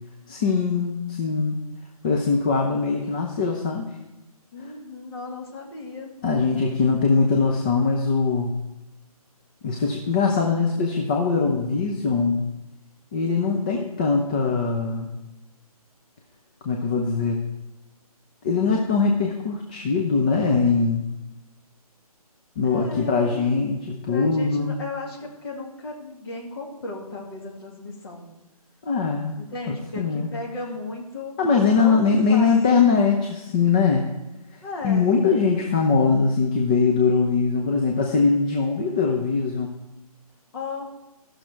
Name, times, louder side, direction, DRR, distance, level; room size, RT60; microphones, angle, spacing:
voice 1, 0.3-1.6 2.0-3.9 6.2-8.6 9.6-12.5 13.1-15.1 16.6-17.4 18.4-21.0 22.6-24.8 28.8-29.4 29.7-30.3 31.4-34.0 34.5-39.7, left 4 dB, 15° left, 1 dB, 0.5 m, -22 dB
voice 2, 4.5-6.1 22.6-23.4 24.1-28.3 29.4-31.4 31.8-32.9 34.6-35.1 40.5-40.9, left 3 dB, 40° left, -1 dB, 2.3 m, -35 dB
14.0 x 6.4 x 4.5 m, 1.0 s
figure-of-eight pair, 155°, 20 cm